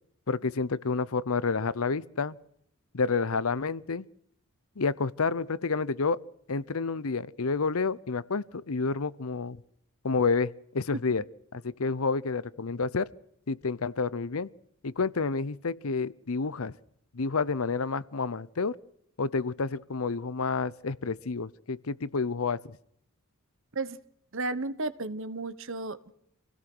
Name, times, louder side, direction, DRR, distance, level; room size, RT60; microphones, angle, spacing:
voice 1, 0.3-2.4 2.9-4.1 4.8-6.2 6.5-9.6 10.0-11.2 11.5-13.1 13.5-14.5 14.8-16.7 17.1-18.7 19.2-22.8, left 4 dB, 70° left, 19 dB, 0.8 m, -29 dB
voice 2, 24.3-26.1, right 2 dB, 60° right, 14 dB, 1.2 m, -33 dB
27.0 x 17.0 x 6.2 m, 0.74 s
head